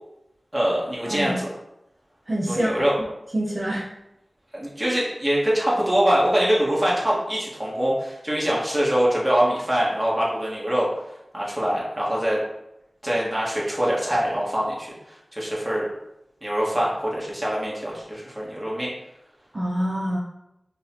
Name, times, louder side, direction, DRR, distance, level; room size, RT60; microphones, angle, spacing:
voice 1, 0.5-1.5 2.5-3.0 4.5-10.9 11.3-12.4 13.0-15.9 16.4-18.9, equal, 10° right, -6 dB, 1.5 m, -24 dB
voice 2, 1.1-1.4 2.3-2.7 3.3-3.8 19.5-20.2, right 1 dB, 40° right, -5 dB, 0.7 m, -25 dB
5.3 x 2.4 x 2.8 m, 0.87 s
wide cardioid pair, 50°, 0 cm